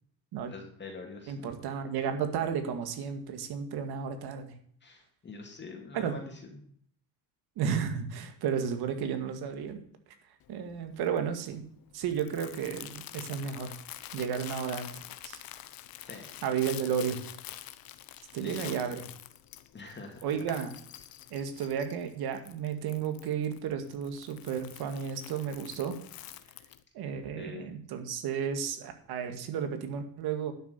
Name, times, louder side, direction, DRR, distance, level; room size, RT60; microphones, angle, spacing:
voice 1, 0.4-1.3 4.8-6.7 16.0-16.3 18.4-18.8 19.7-20.2 27.3-27.7, left 3 dB, 30° left, 2 dB, 2.6 m, -44 dB
voice 2, 1.3-4.5 5.9-6.2 7.6-9.8 10.5-11.6 11.9-13.7 14.1-15.4 16.4-17.2 18.3-19.0 20.2-20.7 21.3-26.0 26.9-30.5, right 7 dB, 75° right, 7 dB, 2.1 m, -33 dB
Crumpling crinkling, 10.4-26.8, left 13 dB, 65° left, 1.0 m, -47 dB
12.0 x 7.1 x 6.8 m, 0.62 s
cardioid pair, 140°, 38 cm